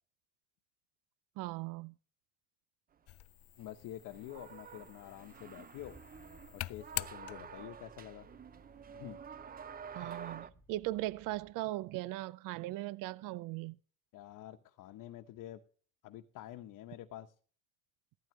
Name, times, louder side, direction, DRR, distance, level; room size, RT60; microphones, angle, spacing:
voice 1, 1.4-1.9 9.9-13.8, right 17 dB, 70° right, 0.5 m, -39 dB
sound 1, 3.1-7.8, left 15 dB, 45° left, 0.5 m, -46 dB
voice 2, 3.6-6.0 6.5-8.3 8.9-9.2 14.1-15.6 16.0-17.3, left 13 dB, 60° left, 1.0 m, -48 dB
sound 2, 4.0-10.5, right 7 dB, 25° right, 0.6 m, -49 dB
Car / Engine starting, 5.3-11.5, right 1 dB, 5° right, 4.8 m, -62 dB
15.5 x 12.0 x 3.2 m
cardioid pair, 125°, 34 cm